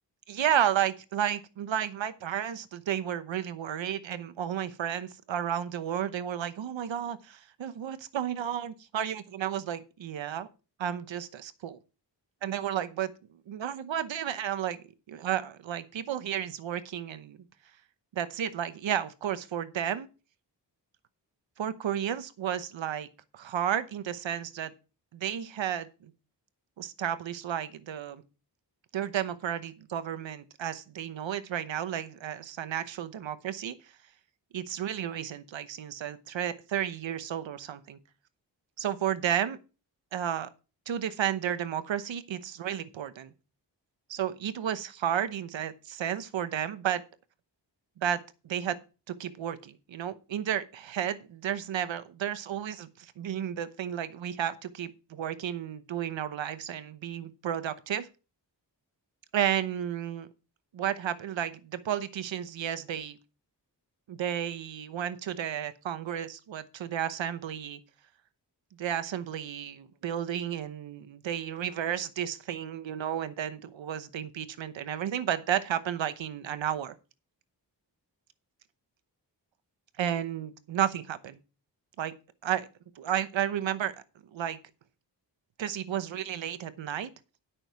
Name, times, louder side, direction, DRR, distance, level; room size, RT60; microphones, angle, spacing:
voice 1, 0.3-10.5 10.8-11.8 12.4-13.1 13.5-14.8 15.1-17.4 18.1-20.1 21.6-23.1 23.3-24.7 25.1-26.1 26.8-28.2 28.9-33.8 34.5-38.0 38.8-39.6 40.1-40.5 40.9-43.3 44.1-47.0 48.0-48.8 49.1-58.1 59.3-60.3 60.7-63.2 64.1-67.8 68.8-77.0 80.0-81.4 82.0-82.1 82.4-82.7 83.0-84.0 84.3-84.6 85.6-87.1, right 10 dB, 90° right, 1.0 m, -32 dB
12.0 x 6.3 x 4.6 m
cardioid pair, 45°, 44 cm